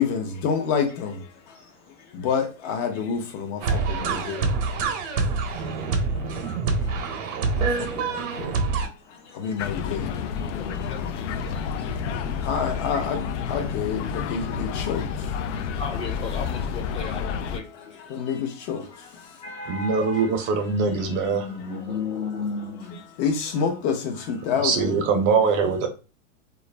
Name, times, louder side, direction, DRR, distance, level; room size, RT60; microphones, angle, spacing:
voice 1, 0.0-1.6 2.1-5.2 5.5-6.4 6.8-8.7 9.1-10.5 11.7-15.6 18.1-19.4 23.2-25.0, left 6 dB, 45° left, 0.8 m, -29 dB
sound 1, 3.6-8.9, right 4 dB, 70° right, 0.7 m, -26 dB
sound 2, 9.6-17.6, left 6 dB, 65° left, 0.5 m, -30 dB
voice 2, 10.6-11.2 11.5-11.7 15.8-17.6 19.4-20.4 20.7-23.0, left 4 dB, 15° left, 0.5 m, -34 dB
voice 3, 19.7-21.4 24.6-25.9, right 5 dB, 30° right, 0.6 m, -22 dB
2.4 x 2.1 x 3.2 m
hypercardioid pair, 130°, 39 cm